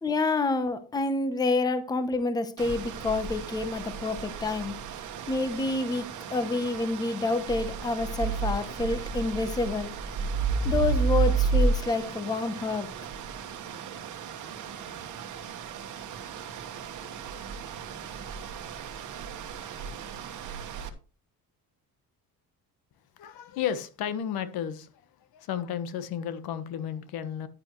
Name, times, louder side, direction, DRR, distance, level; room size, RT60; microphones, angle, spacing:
voice 1, 0.0-4.7 5.3-9.9 10.6-12.9, left 3 dB, 10° left, 0.7 m, -28 dB
sound 1, 2.6-20.9, right 5 dB, 55° right, 1.3 m, -32 dB
voice 2, 23.2-24.9 25.3-27.5, left 9 dB, 80° left, 1.3 m, -33 dB
10.5 x 9.6 x 3.1 m
cardioid pair, 175°, 36 cm